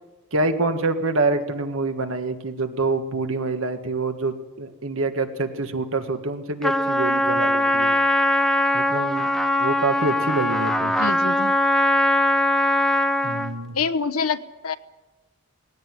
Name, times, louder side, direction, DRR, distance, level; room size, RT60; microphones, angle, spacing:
voice 1, 0.3-7.9 8.7-9.3 9.6-10.9 13.2-13.8, right 3 dB, 70° right, 8 dB, 1.8 m, -26 dB
Trumpet, 6.6-13.6, left 1 dB, ahead, 0.9 m, -21 dB
voice 2, 11.0-11.5 13.3-13.4 13.7-14.4 14.6-14.8, left 5 dB, 90° left, 14 dB, 1.0 m, -25 dB
18.5 x 17.0 x 9.7 m, 1.1 s
head